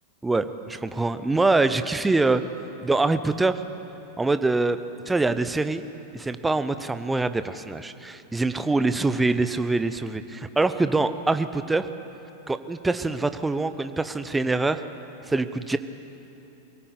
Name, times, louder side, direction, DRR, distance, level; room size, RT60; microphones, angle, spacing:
voice 1, 0.2-2.4 2.8-3.6 4.2-4.8 5.1-5.8 6.1-11.9 12.5-14.8 15.3-15.8, right 3 dB, 10° right, 11 dB, 0.9 m, -24 dB
23.5 x 17.0 x 8.5 m, 3.0 s
figure-of-eight pair, 90°, 0 cm